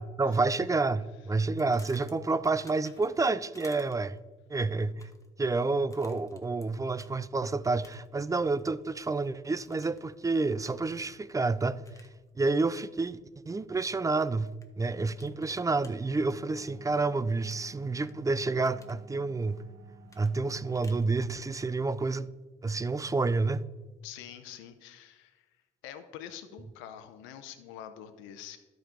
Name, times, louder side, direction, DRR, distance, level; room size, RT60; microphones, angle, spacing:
voice 1, 0.0-4.2 4.5-5.1 5.4-11.8 12.4-13.2 13.5-19.6 20.2-22.3 22.6-23.6, right 3 dB, 15° right, 0.4 m, -29 dB
sound 1, 1.6-3.2 3.5-4.2 4.8-5.3 5.9-6.7 7.0-7.1 7.8-8.2 8.6-9.3 9.6-10.1 10.6-10.9 11.9-12.2 12.7-12.9 14.2-14.7 15.2-15.9 17.5-18.1 18.5-19.0 20.1-21.1, left 2 dB, 15° left, 1.3 m, -55 dB
sound 2, 8.3-20.9, right 7 dB, 85° right, 1.2 m, -59 dB
voice 2, 24.0-25.4 25.8-28.6, left 10 dB, 90° left, 0.7 m, -45 dB
12.0 x 5.2 x 4.5 m
supercardioid pair, 70°, 20 cm